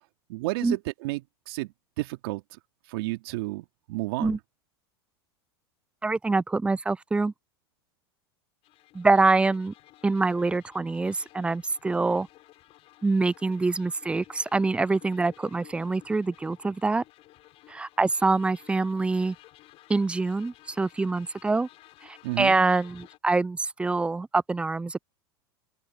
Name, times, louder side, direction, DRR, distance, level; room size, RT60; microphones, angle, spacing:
voice 1, 0.3-2.4 2.9-4.4 22.2-22.6, right 21 dB, 65° right, 2.9 m, -32 dB
voice 2, 6.0-7.3 8.9-9.7 10.0-12.3 13.0-17.0 17.7-19.4 19.9-21.7 22.0-25.0, right 3 dB, 10° right, 0.3 m, -25 dB
sound 1, 8.6-23.2, left 16 dB, 50° left, 6.0 m, -54 dB
open air
hypercardioid pair, 100°, 13 cm